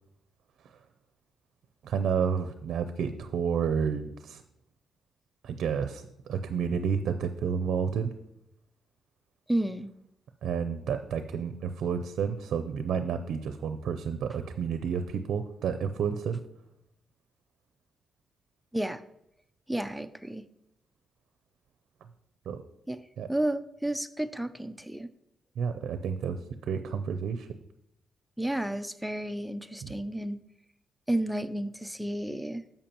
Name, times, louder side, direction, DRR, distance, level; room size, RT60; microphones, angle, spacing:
voice 1, 1.8-4.4 5.4-6.0 6.3-8.1 10.4-16.4 22.5-22.6 23.2-23.3 25.6-26.4 26.7-27.5 29.8-29.9, right 7 dB, 75° right, 9 dB, 0.5 m, -30 dB
voice 2, 9.5-9.9 18.7-19.0 19.7-20.4 22.9-23.0 23.3-25.1 28.4-30.4 31.1-32.6, right 1 dB, ahead, 10 dB, 0.4 m, -31 dB
10.5 x 7.0 x 2.9 m, 0.79 s
cardioid pair, 140°, 0 cm